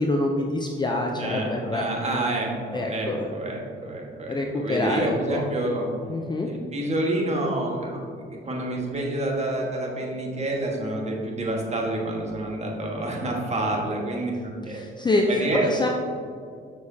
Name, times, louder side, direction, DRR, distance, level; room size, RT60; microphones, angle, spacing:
voice 1, 0.0-1.9 2.7-3.3 4.3-5.4 6.1-6.5 14.7-15.3 15.6-15.9, left 2 dB, 20° left, 1 dB, 0.5 m, -26 dB
voice 2, 1.1-5.9 6.5-8.0 8.4-14.8 15.3-15.9, right 1 dB, 35° right, -1 dB, 1.5 m, -28 dB
7.2 x 6.3 x 2.8 m, 2.3 s
cardioid pair, 90°, 20 cm